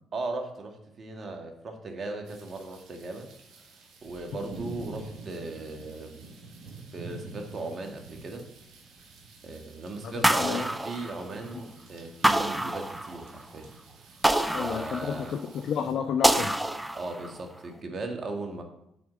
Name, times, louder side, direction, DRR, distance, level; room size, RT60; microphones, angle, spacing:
voice 1, 0.1-3.3 4.0-6.3 6.9-8.5 9.4-13.7 14.6-15.4 16.9-18.6, right 2 dB, 50° right, 4 dB, 1.7 m, -37 dB
sound 1, 2.3-15.9, right 3 dB, 70° right, 1.7 m, -48 dB
voice 2, 10.0-10.6 14.5-16.5, left 7 dB, 65° left, 9 dB, 0.5 m, -31 dB
sound 2, 10.2-11.6 12.2-13.4 14.2-15.5 16.2-17.4, right 1 dB, 10° right, 0.7 m, -26 dB
7.0 x 4.7 x 6.3 m, 0.76 s
hypercardioid pair, 55°, 0 cm